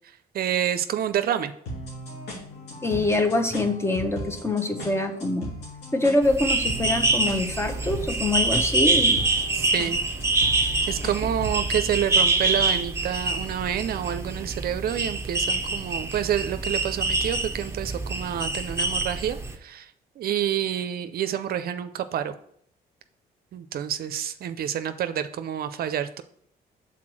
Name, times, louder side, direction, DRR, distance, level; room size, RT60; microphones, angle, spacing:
voice 1, 0.3-1.5 9.5-10.0 10.9-19.9 20.2-22.3 23.5-26.2, right 10 dB, 65° right, 11 dB, 0.5 m, -28 dB
sound 1, 1.7-11.6, equal, 90° left, 2.2 m, -38 dB
voice 2, 2.8-5.5 5.9-9.2, left 2 dB, 15° left, 6 dB, 0.9 m, -25 dB
sound 2, 6.2-19.5, right 3 dB, 15° right, 0.8 m, -25 dB
5.9 x 4.0 x 6.1 m, 0.65 s
cardioid pair, 90°, 17 cm